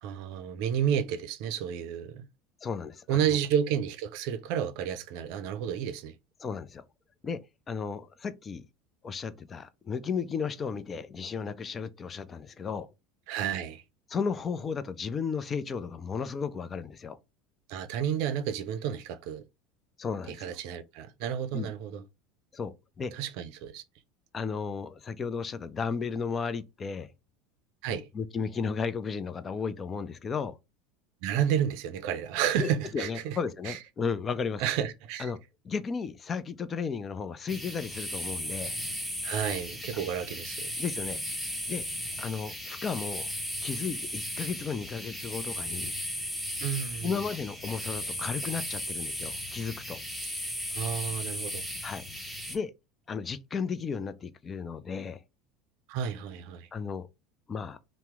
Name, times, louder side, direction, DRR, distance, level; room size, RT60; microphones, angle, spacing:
voice 1, 0.0-2.3 3.1-6.1 13.3-13.8 17.7-19.4 20.3-22.0 23.1-23.8 27.8-28.0 31.2-33.4 33.6-33.8 34.6-35.3 39.2-40.7 46.6-47.1 50.7-51.7 55.9-56.7, right 9 dB, 65° right, 0.4 m, -31 dB
voice 2, 2.6-3.2 6.4-6.8 7.2-7.4 7.7-8.7 9.0-12.9 14.1-17.2 20.0-20.6 21.5-21.7 22.5-23.1 24.3-27.1 27.9-30.6 32.6-34.6 35.2-35.4 35.6-38.8 40.8-41.2 41.7-41.8 42.2-43.3 43.6-45.9 47.0-50.0 51.8-52.0 52.5-52.7 53.1-55.2 56.7-57.1 57.5-57.8, left 5 dB, 30° left, 0.4 m, -34 dB
sound 1, 37.5-52.6, equal, 5° left, 1.0 m, -36 dB
2.8 x 2.1 x 3.4 m
hypercardioid pair, 80°, 0 cm